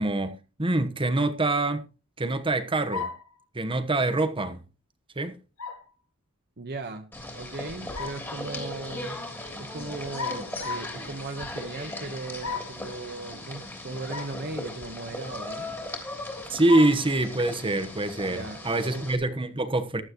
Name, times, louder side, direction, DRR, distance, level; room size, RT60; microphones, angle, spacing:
voice 1, 0.0-1.8 2.2-3.1 3.5-4.6 5.2-5.4 16.5-20.0, right 2 dB, 25° right, 1.2 m, -25 dB
sound 1, 2.9-3.3 5.6-5.9 7.7-8.3 10.2-11.0 12.4-12.8 14.1-14.4 14.9-15.0 16.7-17.0, left 5 dB, 85° left, 1.6 m, -34 dB
voice 2, 6.6-9.3 9.6-15.7 18.2-19.1, right 3 dB, 50° right, 1.2 m, -38 dB
sound 2, 7.1-19.2, left 1 dB, 10° left, 3.3 m, -38 dB
15.0 x 12.0 x 3.1 m
head